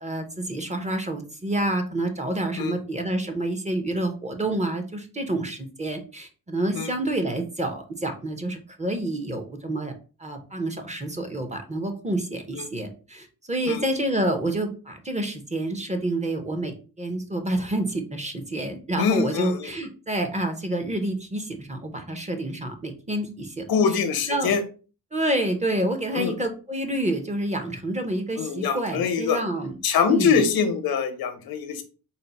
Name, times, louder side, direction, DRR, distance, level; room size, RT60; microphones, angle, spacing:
voice 1, 0.0-9.9 10.2-24.0 24.3-24.5 25.1-29.8 30.1-30.4, right 1 dB, 20° right, 6 dB, 0.6 m, -28 dB
voice 2, 19.0-19.7 23.7-24.6 26.1-26.3 28.4-29.4 29.8-31.8, left 6 dB, 80° left, 8 dB, 0.8 m, -23 dB
4.1 x 2.0 x 4.0 m, 0.35 s
cardioid pair, 115°, 36 cm